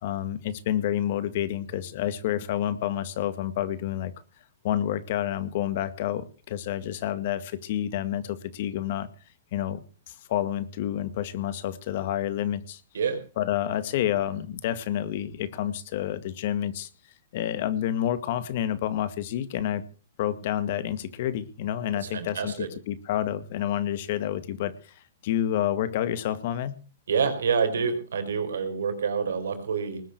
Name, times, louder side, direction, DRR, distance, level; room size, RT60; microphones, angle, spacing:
voice 1, 0.0-4.1 4.6-9.1 9.5-12.8 13.4-16.9 17.3-19.8 20.2-24.9 25.2-26.8, left 11 dB, 50° left, 14 dB, 2.0 m, -29 dB
voice 2, 22.0-22.7 27.1-30.0, right 6 dB, 85° right, 7 dB, 4.9 m, -27 dB
20.0 x 7.6 x 8.2 m, 0.38 s
hypercardioid pair, 150°, 0 cm